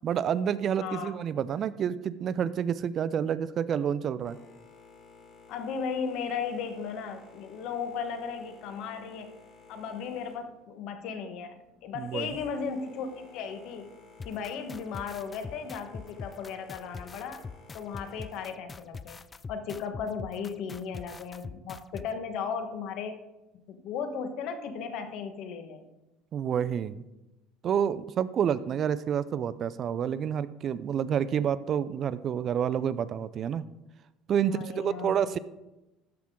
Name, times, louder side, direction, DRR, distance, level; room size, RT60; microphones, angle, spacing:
voice 1, 0.0-4.4 11.9-12.4 26.3-27.0 27.6-33.6 34.3-35.4, right 8 dB, 45° right, 15 dB, 0.4 m, -29 dB
voice 2, 0.8-1.2 5.5-9.3 9.7-13.9 14.2-17.4 17.7-19.2 19.5-23.2 23.7-25.9 34.4-35.2, left 6 dB, 65° left, 8 dB, 1.2 m, -36 dB
Boat Water vehicle, 4.2-18.5, left 4 dB, 45° left, 2.5 m, -54 dB
sound 1, 14.2-22.1, left 4 dB, 25° left, 0.3 m, -42 dB
13.5 x 5.9 x 3.7 m, 0.97 s
cardioid pair, 120°, 0 cm